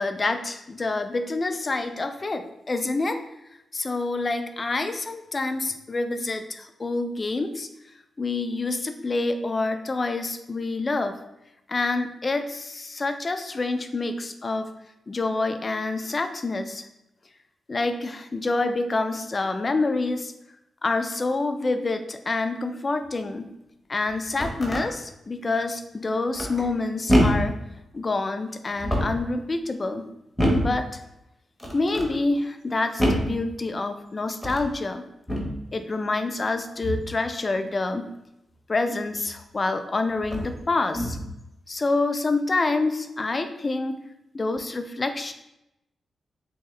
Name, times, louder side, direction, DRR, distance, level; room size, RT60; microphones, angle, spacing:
voice 1, 0.0-3.2 3.7-7.7 8.2-11.1 11.7-14.7 15.1-16.9 17.7-20.3 20.8-23.5 23.9-27.6 27.9-30.1 30.6-31.0 31.7-35.1 35.7-38.1 38.7-41.2 41.7-44.0 44.3-45.3, left 3 dB, 30° left, 8 dB, 0.3 m, -27 dB
sound 1, 24.1-24.9 26.4-26.8 27.1-27.6 28.7-29.3 30.4-30.8 31.6-32.1 33.0-33.4 34.3-34.7 35.3-35.6 36.8-37.1 39.3-39.4 40.2-40.6 40.9-41.3, equal, 5° left, 0.8 m, -25 dB
3.6 x 2.7 x 3.1 m, 0.88 s
cardioid pair, 100°, 0 cm